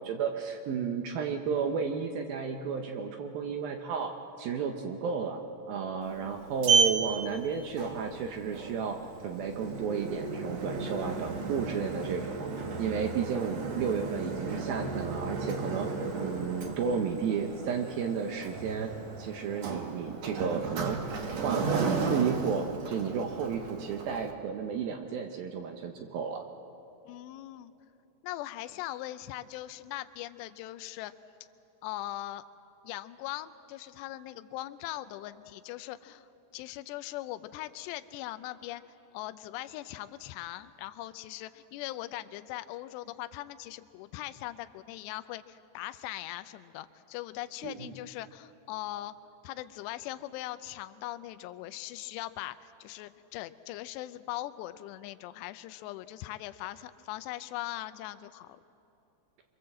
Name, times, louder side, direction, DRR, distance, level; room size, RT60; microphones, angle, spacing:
voice 1, 0.0-4.1 4.4-5.4 5.7-9.0 9.2-12.5 12.8-18.9 19.2-21.0 21.4-26.4 47.6-47.9, right 6 dB, 70° right, 4 dB, 2.5 m, -32 dB
Sliding door, 6.0-24.3, right 4 dB, 50° right, 2.2 m, -34 dB
voice 2, 27.1-27.7 28.2-31.1 31.8-32.5 32.8-38.8 39.1-49.2 49.4-58.6, left 15 dB, 80° left, 11 dB, 2.8 m, -40 dB
25.5 x 23.0 x 7.6 m, 2.9 s
omnidirectional pair, 5.0 m